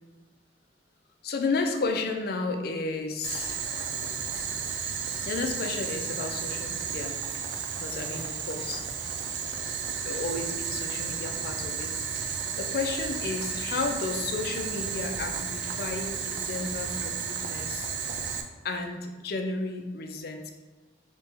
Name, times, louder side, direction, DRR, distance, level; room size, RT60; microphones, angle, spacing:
voice 1, 1.2-3.6 5.3-7.2 7.8-8.9 10.0-17.9 18.6-20.5, left 3 dB, 55° left, 4 dB, 0.4 m, -33 dB
Boiling, 3.2-18.4, right 6 dB, 70° right, 0.4 m, -33 dB
4.5 x 2.9 x 3.4 m, 1.2 s
head